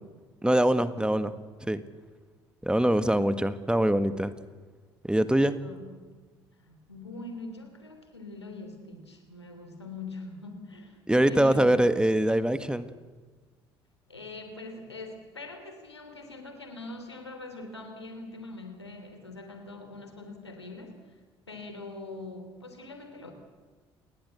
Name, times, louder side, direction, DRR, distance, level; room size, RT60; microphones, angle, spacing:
voice 1, 0.4-1.3 1.6-1.8 2.6-4.3 5.0-5.6 11.1-12.9, right 1 dB, 5° right, 12 dB, 1.7 m, -23 dB
voice 2, 5.6-6.0 6.6-11.9 14.1-21.0 21.5-23.3, left 2 dB, 90° left, 5 dB, 3.2 m, -43 dB
28.5 x 20.0 x 8.3 m, 1.4 s
figure-of-eight pair, 55°, 14 cm